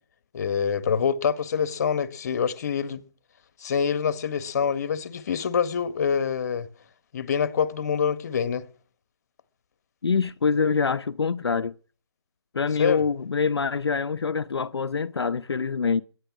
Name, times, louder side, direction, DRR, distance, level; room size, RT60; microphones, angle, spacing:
voice 1, 0.3-3.0 3.6-6.7 7.1-8.6 12.8-13.0, left 7 dB, 35° left, 1.6 m, -25 dB
voice 2, 10.0-11.7 12.5-16.0, left 5 dB, 65° left, 0.8 m, -25 dB
21.5 x 10.5 x 6.1 m
figure-of-eight pair, 160°, 14 cm